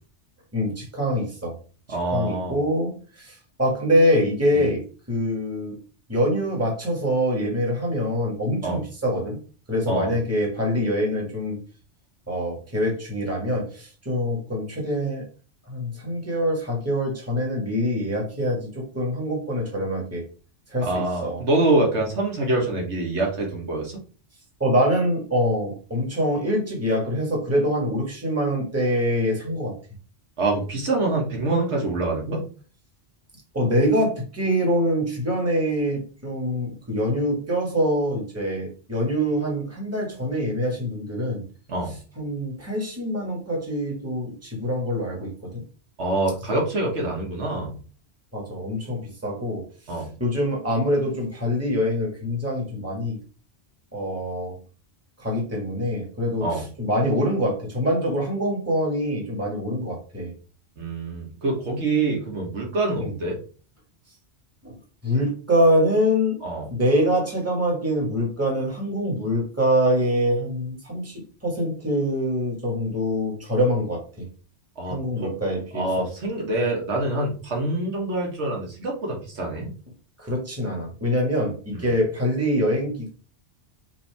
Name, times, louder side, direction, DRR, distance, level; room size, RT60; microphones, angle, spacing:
voice 1, 0.5-1.5 2.1-5.8 6.1-9.4 9.7-11.6 12.3-15.2 15.7-20.2 20.7-21.4 24.6-29.8 33.5-41.4 42.2-45.6 48.3-49.6 50.2-53.2 53.9-54.5 55.2-60.3 63.0-63.1 64.6-64.7 65.0-66.4 66.7-74.2 74.9-76.1 80.2-83.1, equal, 15° right, -2 dB, 1.5 m, -24 dB
voice 2, 1.9-2.6 4.5-4.6 8.6-8.8 9.9-10.1 20.8-23.9 30.4-32.4 41.7-41.9 46.0-47.8 49.9-50.1 56.4-56.6 60.8-63.4 66.4-66.7 74.8-75.3 75.7-79.7 81.7-81.9, right 2 dB, 80° right, -1 dB, 1.6 m, -25 dB
5.7 x 2.8 x 3.4 m, 0.38 s
omnidirectional pair, 1.2 m